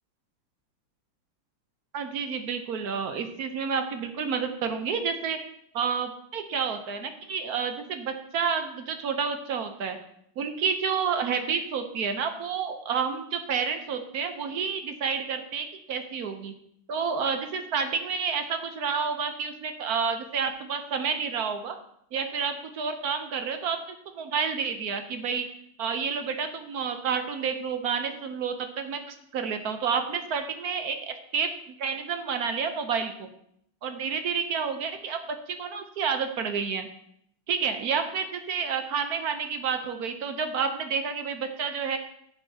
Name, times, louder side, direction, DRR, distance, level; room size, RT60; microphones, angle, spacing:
voice 1, 1.9-5.4 5.7-10.0 10.4-16.5 16.9-21.8 22.1-25.5 25.8-31.5 31.8-33.3 33.8-36.9 37.5-42.0, right 6 dB, 60° right, 7 dB, 1.0 m, -30 dB
15.0 x 7.1 x 2.8 m, 0.71 s
omnidirectional pair, 2.2 m